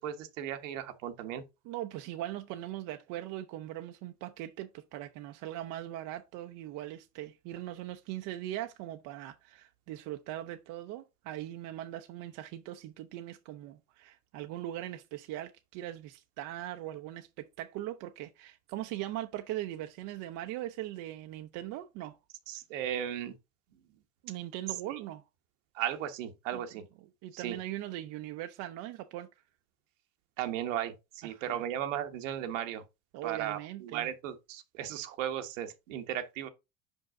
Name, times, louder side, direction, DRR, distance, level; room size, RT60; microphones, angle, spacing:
voice 1, 0.0-1.4 22.5-23.3 24.9-25.0 25.7-26.8 27.3-27.6 30.4-32.8 33.2-36.5, right 10 dB, 80° right, 1.2 m, -36 dB
voice 2, 1.6-22.2 24.2-25.2 26.5-26.7 27.2-29.3 31.2-31.6 33.1-34.1, right 14 dB, 55° right, 0.7 m, -40 dB
5.4 x 5.3 x 3.6 m
hypercardioid pair, 95°, 38 cm